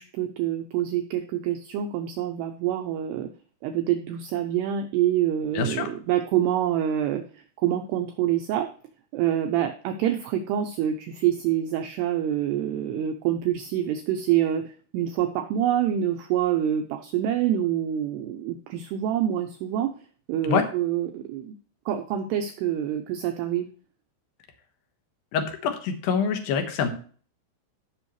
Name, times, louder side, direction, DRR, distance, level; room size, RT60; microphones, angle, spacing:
voice 1, 0.0-3.3 3.6-8.7 9.1-19.9 20.3-21.5 21.9-23.7, right 11 dB, 85° right, 5 dB, 2.3 m, -26 dB
voice 2, 5.5-5.9 20.5-20.6 25.3-26.9, left 6 dB, 65° left, 5 dB, 2.4 m, -25 dB
15.0 x 6.3 x 3.2 m, 0.43 s
omnidirectional pair, 5.6 m